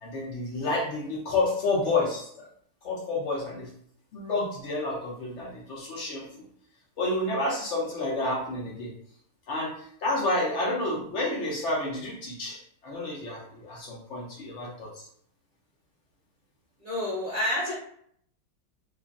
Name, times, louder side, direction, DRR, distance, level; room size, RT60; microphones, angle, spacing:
voice 1, 0.0-2.5 2.8-3.7 4.1-6.3 7.0-8.9 9.5-15.1, left 2 dB, 85° left, -4 dB, 0.6 m, -30 dB
voice 2, 16.8-17.7, left 1 dB, 40° right, -9 dB, 0.5 m, -28 dB
3.1 x 2.3 x 2.4 m, 0.66 s
omnidirectional pair, 1.9 m